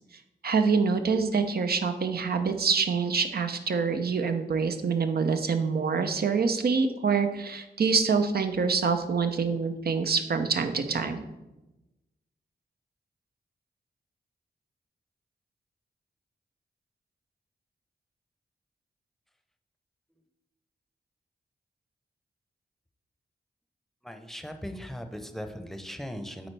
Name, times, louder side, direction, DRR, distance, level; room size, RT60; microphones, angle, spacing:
voice 1, 0.4-11.2, right 5 dB, 60° right, 7 dB, 0.7 m, -26 dB
voice 2, 24.0-26.5, equal, ahead, 7 dB, 0.8 m, -38 dB
8.7 x 4.0 x 3.3 m, 1.0 s
cardioid pair, 40°, 18 cm